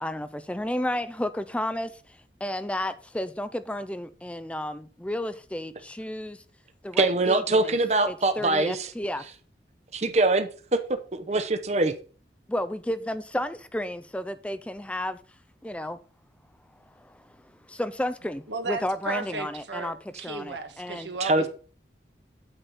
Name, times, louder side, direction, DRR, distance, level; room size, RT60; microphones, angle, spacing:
voice 1, 0.0-6.4 6.8-7.8 8.1-9.2 12.5-15.2 15.6-16.0 17.0-17.2 17.7-21.1, left 1 dB, 5° left, 0.4 m, -32 dB
voice 2, 7.0-8.9 9.9-10.8 11.1-11.9 21.2-21.5, right 2 dB, 40° right, 0.8 m, -23 dB
voice 3, 18.5-21.5, right 3 dB, 90° right, 1.5 m, -34 dB
8.9 x 4.1 x 7.0 m
head